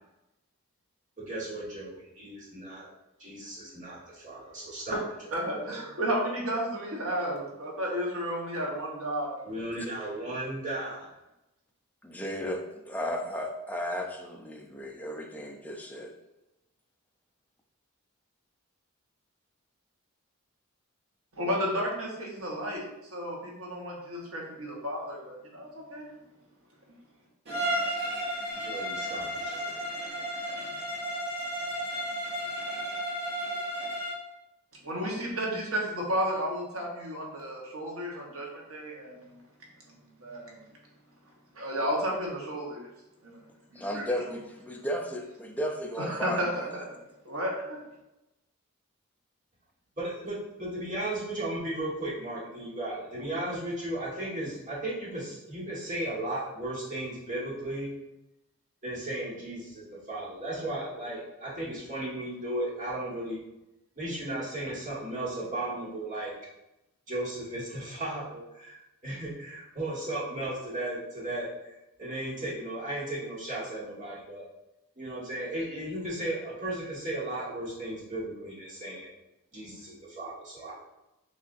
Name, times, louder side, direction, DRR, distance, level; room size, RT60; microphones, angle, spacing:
voice 1, 1.2-2.8 3.2-5.0 9.4-11.1 28.5-29.7 50.0-57.9 58.8-63.4 63.9-66.3 67.1-71.7 72.0-74.5 75.0-79.1 79.5-80.7, right 1 dB, 35° right, -6 dB, 1.6 m, -35 dB
voice 2, 5.3-9.4 21.3-22.8 23.1-26.0 34.8-39.4 39.9-40.6 41.5-42.9 43.2-43.4 43.7-44.4 46.0-46.8 47.2-47.8, equal, 70° right, -2 dB, 1.2 m, -32 dB
voice 3, 12.0-12.6 12.9-16.1 43.8-46.4, equal, 5° left, 2 dB, 0.4 m, -34 dB
Bowed string instrument, 27.5-34.3, equal, 50° right, 1.4 m, -33 dB
6.4 x 2.7 x 2.6 m, 0.94 s
head